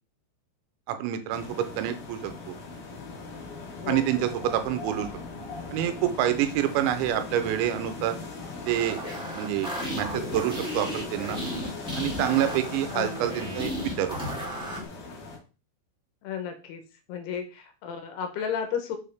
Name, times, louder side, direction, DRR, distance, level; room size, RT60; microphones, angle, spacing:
voice 1, 0.9-2.3 3.9-5.1 5.7-8.2 8.7-9.0 9.4-11.4 12.0-13.7 14.0-14.2, right 11 dB, 90° right, 9 dB, 3.0 m, -27 dB
sound 1, 1.3-15.4, left 3 dB, 55° left, 3.5 m, -39 dB
voice 2, 3.8-4.3 12.9-13.2 16.2-16.8 17.1-19.0, left 7 dB, 75° left, 6 dB, 2.7 m, -33 dB
sound 2, 8.6-14.9, equal, 5° right, 0.4 m, -34 dB
6.4 x 5.5 x 3.4 m, 0.34 s
omnidirectional pair, 5.3 m